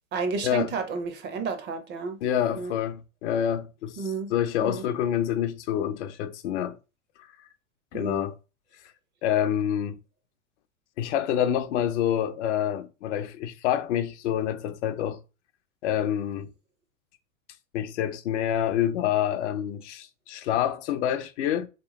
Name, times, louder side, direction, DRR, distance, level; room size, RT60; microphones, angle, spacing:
voice 1, 0.1-2.2 2.5-2.7 4.0-4.3 4.6-4.8 7.9-8.3, right 4 dB, 25° right, 0.5 m, -31 dB
voice 2, 2.2-4.0 4.3-6.8 7.9-8.3 9.2-10.0 11.0-15.2 15.8-16.5 17.7-21.7, left 10 dB, 60° left, 0.6 m, -27 dB
3.3 x 3.0 x 2.9 m
hypercardioid pair, 100°, 41 cm